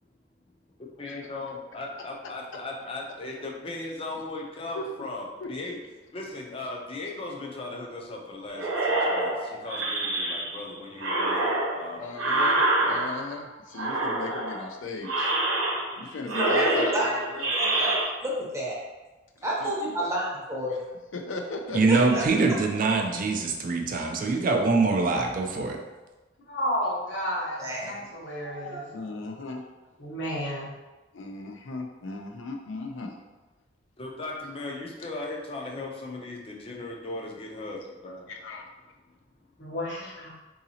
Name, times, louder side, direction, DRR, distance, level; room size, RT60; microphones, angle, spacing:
voice 1, 0.8-5.8 6.1-12.4 12.8-13.0 14.2-14.3 34.0-38.3, left 2 dB, 30° left, -1 dB, 0.5 m, -38 dB
sound 1, 8.6-10.6 11.0-13.4 13.7-14.6 15.0-16.0 16.3-18.0, right 2 dB, 85° right, 0.8 m, -26 dB
voice 2, 12.0-15.4 16.0-17.9 19.6-19.7 21.1-22.0 28.9-29.7 31.1-33.2 38.3-38.7, left 3 dB, 85° left, 3 dB, 0.4 m, -37 dB
voice 3, 16.4-17.2 17.5-18.8 19.4-20.8 21.9-22.2 27.6-28.1 28.4-28.8, right 1 dB, 15° right, -4 dB, 0.7 m, -30 dB
voice 4, 21.7-25.8, right 3 dB, 45° right, 2 dB, 0.4 m, -24 dB
voice 5, 26.5-28.9 30.0-30.8 39.6-40.3, equal, 70° left, -4 dB, 1.0 m, -32 dB
3.8 x 2.7 x 2.8 m, 1.2 s
head